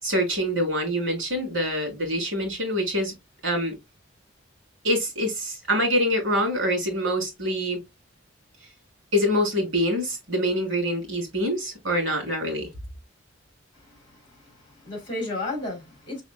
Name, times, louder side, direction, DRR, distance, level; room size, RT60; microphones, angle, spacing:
voice 1, 0.0-3.1 3.4-3.7 4.8-7.8 9.1-12.7, equal, 75° right, 2.7 m, -25 dB
voice 2, 13.7-16.2, left 2 dB, 25° left, 2.7 m, -34 dB
4.8 x 4.2 x 2.2 m
head